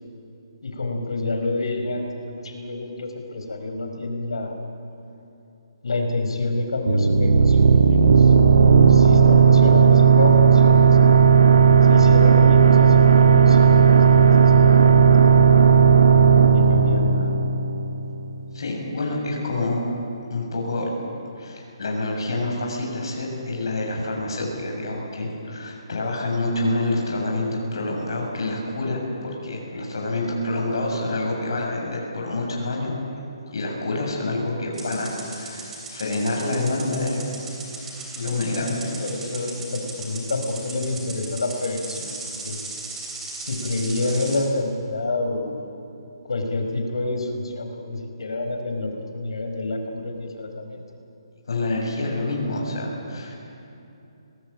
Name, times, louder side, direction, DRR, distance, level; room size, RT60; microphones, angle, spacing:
voice 1, 0.6-4.5 5.8-8.3 8.9-11.1 11.9-15.6 16.5-17.3 39.0-42.6 43.4-45.6 46.3-50.8, left 2 dB, 75° left, 4 dB, 4.9 m, -28 dB
sound 1, 6.9-18.3, right 6 dB, 85° right, 1.8 m, -14 dB
voice 2, 18.5-19.9 20.3-20.9 21.4-29.0 29.4-32.9 33.5-37.2 38.2-38.8 51.5-53.3, left 2 dB, 55° left, -1 dB, 7.4 m, -27 dB
sound 2, 34.7-44.4, right 3 dB, 5° right, 3.2 m, -37 dB
25.0 x 19.0 x 8.9 m, 2.8 s
hypercardioid pair, 170°, 3 cm